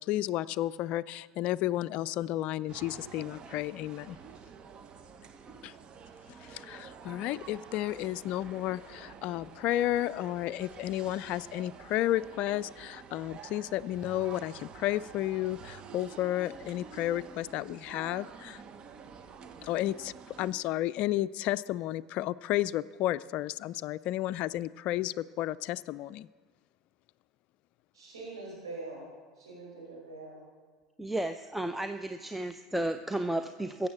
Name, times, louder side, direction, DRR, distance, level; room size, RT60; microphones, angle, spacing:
voice 1, 0.0-4.2 5.6-5.7 6.4-18.6 19.6-20.1 20.4-26.3, left 14 dB, 55° left, 14 dB, 0.4 m, -32 dB
sound 1, 2.7-20.5, right 6 dB, 40° right, 1.0 m, -49 dB
voice 2, 27.9-29.1 29.4-30.4, right 2 dB, 90° right, -5 dB, 5.0 m, -43 dB
voice 3, 31.0-33.9, right 1 dB, 5° right, 8 dB, 0.6 m, -33 dB
16.0 x 7.0 x 7.2 m, 1.5 s
hypercardioid pair, 80°, 3 cm